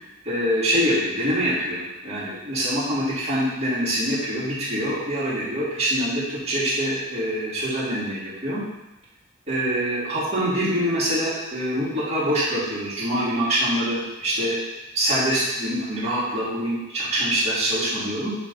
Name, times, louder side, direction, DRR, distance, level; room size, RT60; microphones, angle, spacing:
voice 1, 0.2-8.6 9.5-14.6 14.9-18.3, equal, 30° right, -9 dB, 2.4 m, -24 dB
8.1 x 3.4 x 4.0 m, 0.96 s
head